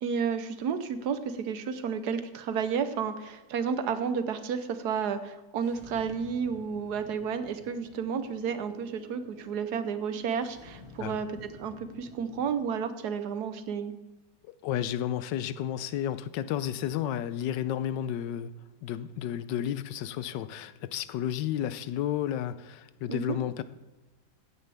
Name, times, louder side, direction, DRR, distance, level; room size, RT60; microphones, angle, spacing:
voice 1, 0.0-13.9 23.1-23.4, right 6 dB, 70° right, 11 dB, 1.3 m, -31 dB
sound 1, 5.6-12.7, left 2 dB, 35° left, 1.5 m, -52 dB
voice 2, 14.5-18.5 18.8-23.6, left 10 dB, 85° left, 14 dB, 1.3 m, -32 dB
15.5 x 9.5 x 3.4 m, 1.1 s
omnidirectional pair, 1.9 m